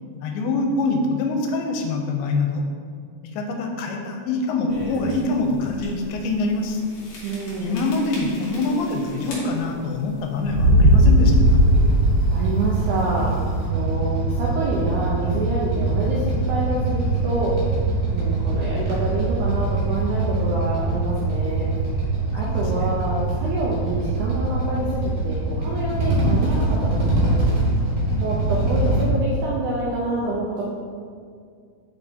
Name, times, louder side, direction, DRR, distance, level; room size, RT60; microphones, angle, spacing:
voice 1, 0.2-2.7 3.2-6.8 7.6-11.6 22.3-22.9, left 3 dB, 85° left, 2 dB, 2.6 m, -25 dB
sound 1, 4.7-5.1 5.7-5.8 6.1-6.2 7.1-7.5 7.8-8.9 9.2-9.8 10.4-12.4, equal, 55° left, 2.4 m, -17 dB
voice 2, 7.2-7.8 8.5-8.6 12.3-17.6 18.1-21.7 22.3-27.4 28.2-30.6, right 2 dB, 80° right, -5 dB, 1.7 m, -27 dB
Motorcycle / Idling, 11.1-29.0, right 2 dB, 55° right, 2.3 m, -23 dB
7.1 x 5.4 x 2.8 m, 2.2 s
omnidirectional pair, 4.4 m